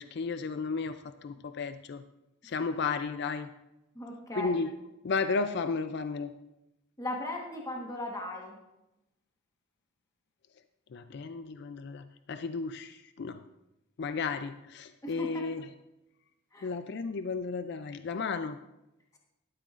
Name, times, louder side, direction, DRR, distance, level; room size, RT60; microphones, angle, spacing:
voice 1, 0.0-2.0 2.4-3.5 4.4-4.7 5.0-6.3 10.9-13.4 14.0-15.7 16.6-18.6, left 4 dB, 55° left, 10 dB, 0.4 m, -33 dB
voice 2, 3.9-4.6 7.0-8.6 15.0-15.5 16.5-16.7, left 1 dB, 15° left, -1 dB, 1.3 m, -37 dB
13.0 x 12.0 x 2.5 m, 0.94 s
head